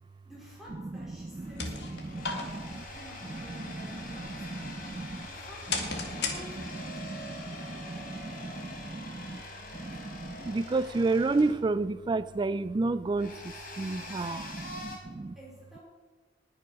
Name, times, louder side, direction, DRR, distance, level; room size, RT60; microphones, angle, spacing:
voice 1, 0.2-2.2 2.8-4.7 5.3-8.9 9.3-10.1 14.0-14.9 15.3-15.8, equal, ahead, -6 dB, 4.5 m, -53 dB
sound 1, 1.2-7.0, left 4 dB, 75° left, 2.3 m, -39 dB
sound 2, 1.2-15.0, left 2 dB, 55° left, 4.1 m, -45 dB
voice 2, 2.0-2.9 3.3-5.3 6.1-6.2 6.9-9.4 9.7-15.3, right 3 dB, 25° right, 13 dB, 0.3 m, -32 dB
19.5 x 6.9 x 6.3 m, 1.3 s
head